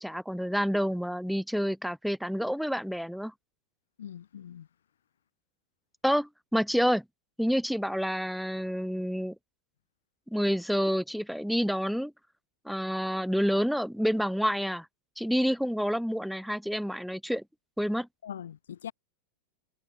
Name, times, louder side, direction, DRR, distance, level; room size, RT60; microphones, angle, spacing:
voice 1, 0.0-3.3 6.0-7.0 7.4-9.4 10.3-12.1 12.7-14.9 15.2-17.4 17.8-18.1, equal, ahead, 2.2 m, -28 dB
voice 2, 4.0-4.7 18.2-18.9, left 9 dB, 65° left, 4.2 m, -41 dB
figure-of-eight pair, 90°, 0 cm